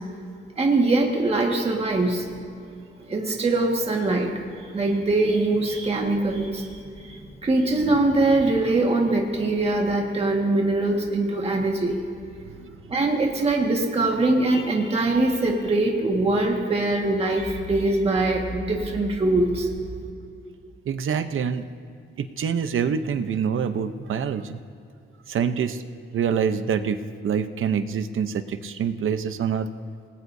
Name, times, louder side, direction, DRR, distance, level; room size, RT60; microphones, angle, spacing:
voice 1, 0.6-2.3 3.0-4.3 4.6-12.0 12.9-19.7, right 2 dB, 30° right, 0 dB, 1.7 m, -22 dB
voice 2, 20.9-21.6 22.2-24.6 25.3-25.8 26.1-27.0 27.2-29.7, right 7 dB, 80° right, 10 dB, 0.8 m, -25 dB
26.5 x 19.5 x 2.7 m, 2.6 s
wide cardioid pair, 170°, 21 cm